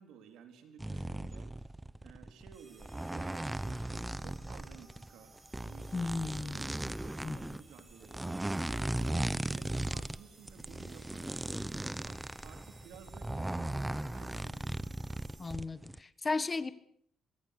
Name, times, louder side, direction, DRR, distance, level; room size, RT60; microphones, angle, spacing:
voice 1, 0.0-1.7 2.0-5.4 5.6-14.9, right 7 dB, 85° right, 6 dB, 3.9 m, -55 dB
sound 1, 0.8-2.6 2.8-5.1 5.4-10.2 10.5-16.0, right 1 dB, 10° right, 1.0 m, -37 dB
sound 2, 2.5-15.5, right 3 dB, 35° right, 7.9 m, -59 dB
voice 2, 5.9-6.6 7.2-7.4 15.4-16.7, left 3 dB, 30° left, 14 dB, 1.5 m, -35 dB
23.5 x 23.0 x 6.8 m, 0.63 s
cardioid pair, 90°, 0 cm